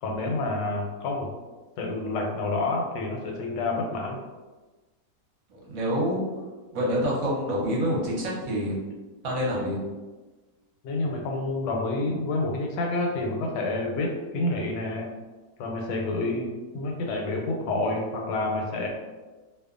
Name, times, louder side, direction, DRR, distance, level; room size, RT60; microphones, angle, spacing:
voice 1, 0.0-1.3 1.8-4.2 10.8-15.1 15.6-18.9, left 2 dB, 90° left, 1 dB, 1.2 m, -28 dB
voice 2, 5.5-6.2 6.7-8.7 9.2-9.8, equal, 65° right, -5 dB, 1.1 m, -27 dB
2.8 x 2.2 x 2.4 m, 1.2 s
omnidirectional pair, 1.8 m